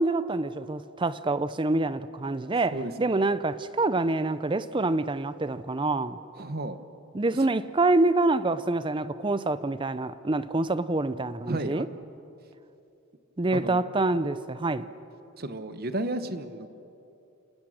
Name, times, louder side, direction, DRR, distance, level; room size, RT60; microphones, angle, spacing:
voice 1, 0.0-6.2 7.1-11.9 13.4-14.9, right 2 dB, 20° right, 0.5 m, -26 dB
voice 2, 6.4-6.8 11.5-11.8 13.5-13.8 15.4-16.7, right 2 dB, 45° right, 1.0 m, -32 dB
29.5 x 19.0 x 6.5 m
head